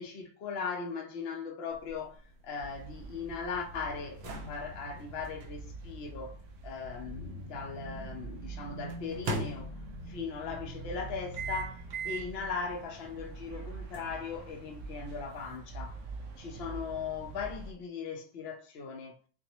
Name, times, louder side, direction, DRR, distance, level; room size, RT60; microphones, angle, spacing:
voice 1, 0.0-6.4 6.6-9.7 10.1-16.0 16.4-19.2, left 5 dB, 80° left, 0.5 m, -39 dB
sound 1, 1.7-7.8 8.9-10.2 11.3-12.4 12.9-13.0 13.9-15.6, right 3 dB, 90° right, 1.6 m, -41 dB
sound 2, 2.6-17.7, right 2 dB, 65° right, 0.8 m, -45 dB
6.2 x 2.1 x 2.8 m
omnidirectional pair, 2.1 m